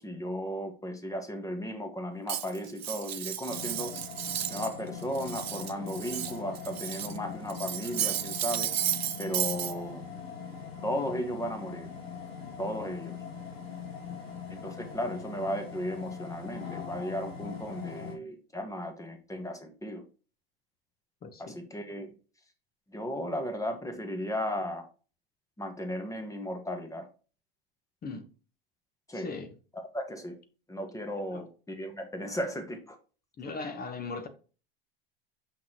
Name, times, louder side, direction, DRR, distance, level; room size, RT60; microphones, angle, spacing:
voice 1, 0.0-3.9 4.5-8.7 9.2-10.0 10.8-11.9 12.6-13.2 14.5-20.0 21.4-22.1 22.9-24.9 25.6-27.1 29.1-29.3 29.7-30.4 30.7-33.0, equal, 10° left, 1.7 m, -35 dB
Cutlery silverware, 2.3-4.7 5.0-7.2 7.5-9.7, right 11 dB, 85° right, 0.6 m, -33 dB
sound 1, 3.5-18.1, left 6 dB, 85° left, 2.4 m, -42 dB
voice 2, 21.2-21.6 28.0-28.3 29.1-29.5 31.3-31.4 33.4-34.3, left 4 dB, 30° left, 1.3 m, -39 dB
6.0 x 5.8 x 3.0 m
hypercardioid pair, 80°, 30 cm